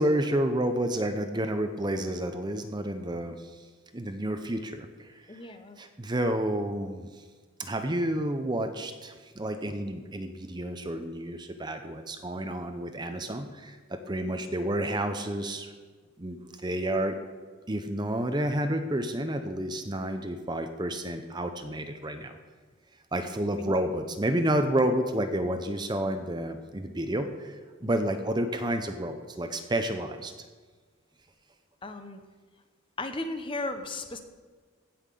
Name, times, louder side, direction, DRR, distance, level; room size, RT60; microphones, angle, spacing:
voice 1, 0.0-3.6 3.9-5.4 5.8-7.1 7.6-15.7 16.2-17.2 17.7-22.3 23.1-30.3, right 1 dB, 20° right, 7 dB, 0.7 m, -30 dB
voice 2, 5.3-5.8 23.6-23.7 27.8-27.9 31.8-32.2 33.0-34.2, left 2 dB, 25° left, 7 dB, 0.9 m, -35 dB
15.5 x 5.8 x 6.9 m, 1.4 s
head